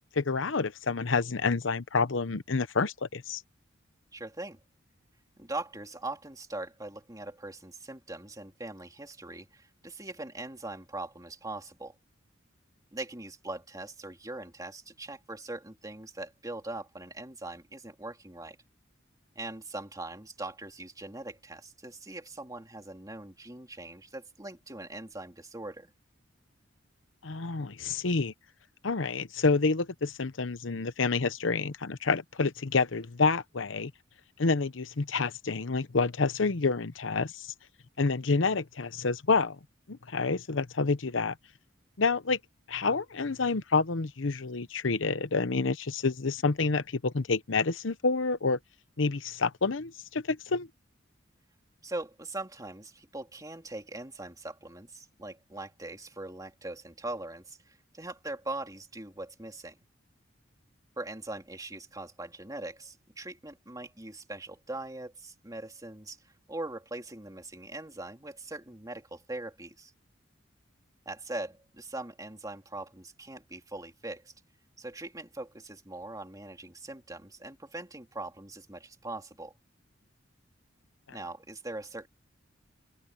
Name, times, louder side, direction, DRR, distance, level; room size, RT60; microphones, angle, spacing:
voice 1, 0.0-3.4 27.2-28.3 28.8-33.9 34.4-37.5 38.0-39.6 39.9-41.4 42.0-42.4 42.7-48.6 49.0-50.7, left 4 dB, 75° left, 0.9 m, -28 dB
voice 2, 4.1-4.6 5.4-11.9 12.9-18.6 19.3-25.9 51.8-59.7 61.0-69.9 71.0-74.3 74.8-79.5 81.1-82.1, right 2 dB, 20° right, 3.1 m, -41 dB
open air
head